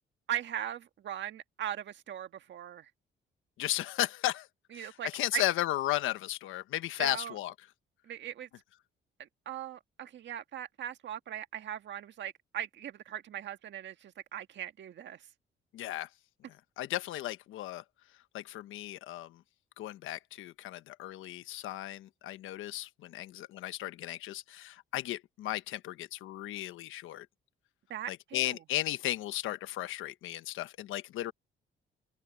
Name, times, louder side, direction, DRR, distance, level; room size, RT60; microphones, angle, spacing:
voice 1, 0.3-2.9 4.7-5.4 7.0-7.3 8.0-8.5 9.2-15.2 27.9-28.6, right 10 dB, 65° right, 1.7 m, -39 dB
voice 2, 3.6-4.5 4.7-7.5 15.7-16.1 16.8-17.8 18.3-19.4 19.8-27.3 28.1-31.3, left 14 dB, 90° left, 1.2 m, -35 dB
cardioid pair, 90°, 20 cm